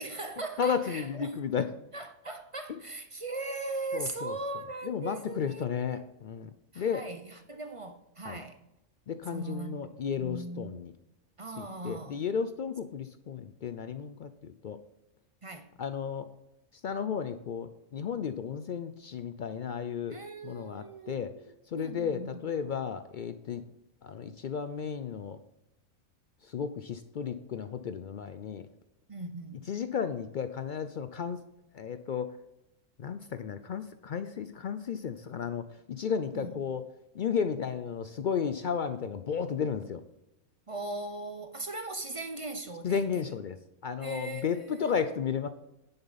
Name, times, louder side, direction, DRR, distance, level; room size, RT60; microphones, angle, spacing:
voice 1, 0.0-1.4 1.9-6.0 6.7-8.6 9.3-9.8 10.2-10.9 11.4-12.2 15.4-15.7 20.1-22.5 29.1-29.6 36.3-36.6 40.7-43.4 44.0-45.0, right 2 dB, 35° right, 0.6 m, -39 dB
voice 2, 0.6-1.7 3.9-4.3 4.9-6.5 6.8-7.0 8.3-8.4 9.1-10.9 11.6-14.8 15.8-16.3 16.8-20.2 20.4-21.3 21.7-23.6 24.0-25.4 26.5-28.6 29.7-31.4 31.7-32.3 33.0-36.8 37.1-40.0 42.8-43.6 43.8-45.5, left 7 dB, 75° left, 0.4 m, -33 dB
10.5 x 8.0 x 4.0 m
omnidirectional pair, 1.4 m